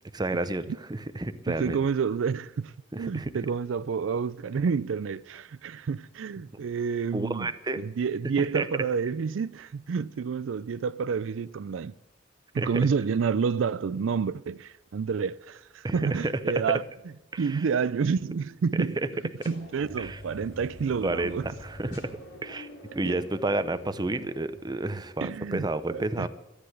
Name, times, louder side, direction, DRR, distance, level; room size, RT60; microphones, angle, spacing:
voice 1, 0.2-0.6 0.9-1.8 2.9-3.3 6.5-6.6 7.1-7.8 8.4-8.7 12.6-12.7 15.8-16.5 17.3-17.6 20.0-20.2 21.0-22.1 22.4-22.7 22.9-26.3, right 2 dB, 20° right, 0.7 m, -30 dB
voice 2, 1.5-7.5 7.8-12.0 12.5-16.8 17.4-19.0 19.5-21.5 23.0-23.2 25.2-26.3, right 6 dB, 90° right, 0.4 m, -29 dB
Electric motor engine start stop, 19.4-25.3, equal, 75° left, 4.4 m, -46 dB
13.5 x 9.9 x 8.0 m
head